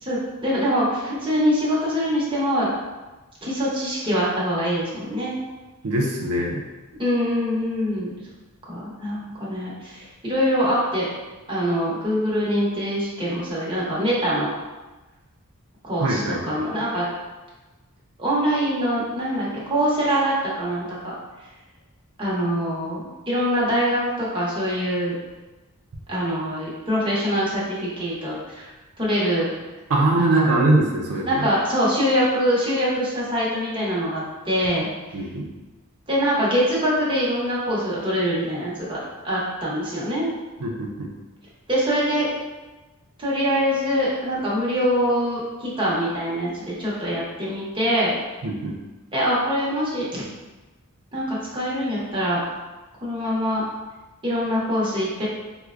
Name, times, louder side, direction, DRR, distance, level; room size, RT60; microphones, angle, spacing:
voice 1, 0.0-2.7 3.4-5.3 7.0-8.2 8.7-11.1 11.5-14.5 15.8-17.0 18.2-21.2 22.2-25.1 26.1-28.7 29.0-29.5 30.2-30.5 31.3-34.9 36.1-40.3 41.7-42.3 43.2-48.1 49.1-50.2 51.1-52.4 53.0-53.6 54.2-55.3, equal, 25° right, -7 dB, 0.9 m, -24 dB
voice 2, 5.8-6.6 16.0-16.4 29.9-31.5 35.1-35.5 40.6-41.1 48.4-48.7, right 2 dB, 85° right, -2 dB, 0.5 m, -22 dB
4.4 x 2.2 x 2.4 m, 1.2 s
head